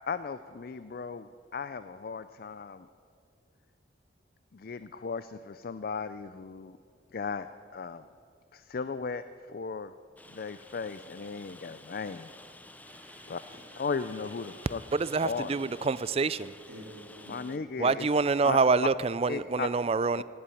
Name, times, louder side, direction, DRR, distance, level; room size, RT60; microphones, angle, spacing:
voice 1, 0.1-2.9 4.5-6.8 7.1-7.5 7.7-8.0 8.5-9.9 10.3-12.3 13.3-13.4 13.8-14.8 15.2-15.9 17.3-18.1 18.4-18.6 19.3-19.7 20.2-20.3, left 5 dB, 50° left, 0.4 m, -36 dB
Rain, 10.2-17.6, left 2 dB, 10° left, 0.6 m, -51 dB
voice 2, 12.8-14.9 16.7-17.6, right 1 dB, 55° right, 2.7 m, -52 dB
voice 3, 14.9-16.5 17.8-20.2, right 4 dB, 30° right, 0.4 m, -26 dB
17.0 x 8.8 x 9.7 m
head